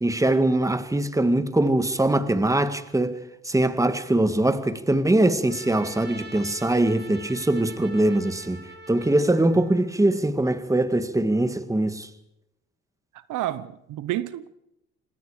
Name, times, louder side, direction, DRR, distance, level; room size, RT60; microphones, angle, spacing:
voice 1, 0.0-3.2 3.4-12.1, right 1 dB, 10° right, 1.9 m, -22 dB
Trumpet, 5.5-9.9, right 2 dB, 35° right, 3.8 m, -44 dB
voice 2, 13.1-14.5, right 13 dB, 85° right, 1.0 m, -30 dB
26.0 x 20.0 x 5.0 m
cardioid pair, 90°, 30 cm